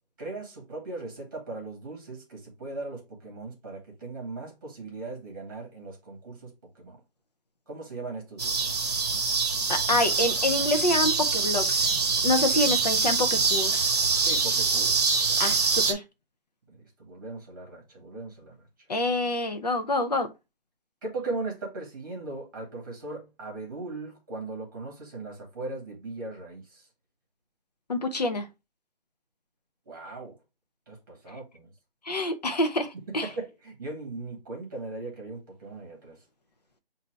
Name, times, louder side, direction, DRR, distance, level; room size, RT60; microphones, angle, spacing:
voice 1, 0.2-7.0 7.7-8.7 14.2-15.5 16.7-18.7 21.0-26.9 29.8-30.4 30.9-31.7 32.9-36.2, right 3 dB, 20° right, 1.4 m, -38 dB
sound 1, 8.4-15.9, right 4 dB, 45° right, 0.9 m, -25 dB
voice 2, 9.7-11.9 12.2-13.9 15.4-16.0 18.9-20.3 27.9-28.5 32.0-33.3, left 2 dB, 45° left, 0.7 m, -27 dB
5.8 x 2.8 x 3.1 m
hypercardioid pair, 175°, 29 cm